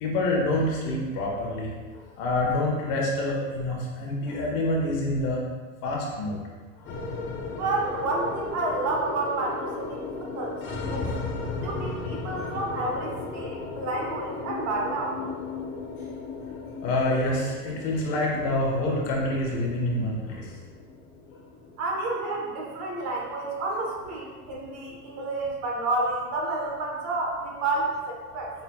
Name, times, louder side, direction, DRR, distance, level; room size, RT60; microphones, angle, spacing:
voice 1, 0.0-5.4 5.8-6.4 11.6-11.7 16.8-20.5, left 1 dB, 50° left, -2 dB, 1.2 m, -27 dB
sound 1, 6.9-25.2, left 3 dB, 30° left, 0.6 m, -36 dB
voice 2, 7.5-11.0 11.6-15.2 21.8-28.5, right 2 dB, 40° right, -2 dB, 1.1 m, -30 dB
5.8 x 3.9 x 2.3 m, 1.4 s
supercardioid pair, 125°, 42 cm